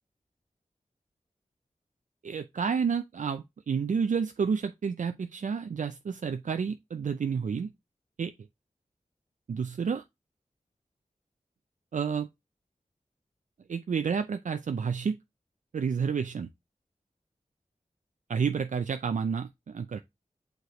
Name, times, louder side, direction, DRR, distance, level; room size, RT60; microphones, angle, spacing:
voice 1, 2.2-7.7 8.2-8.3 9.5-10.0 11.9-12.3 13.7-15.2 15.7-16.5 18.3-20.0, right 6 dB, 70° right, 0.4 m, -30 dB
6.6 x 4.7 x 3.0 m
wide cardioid pair, 50°, 14 cm